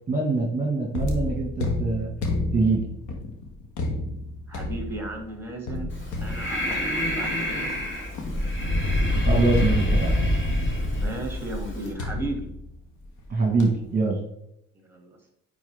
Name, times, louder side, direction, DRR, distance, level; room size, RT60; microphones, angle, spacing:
voice 1, 0.1-2.1 2.5-3.1 9.2-10.1 13.3-14.2, right 3 dB, 30° right, 0 dB, 1.5 m, -24 dB
sound 1, 0.9-8.8 9.6-10.6 12.0-13.3 13.6-13.9, left 2 dB, 80° left, 1.5 m, -32 dB
voice 2, 4.5-5.9 6.2-7.9 10.8-12.5 14.9-15.3, right 2 dB, 10° right, 2 dB, 2.3 m, -36 dB
Breathing, 5.9-11.9, left 1 dB, 40° left, 2.3 m, -25 dB
9.4 x 4.1 x 3.4 m, 0.80 s
cardioid pair, 90°, 30 cm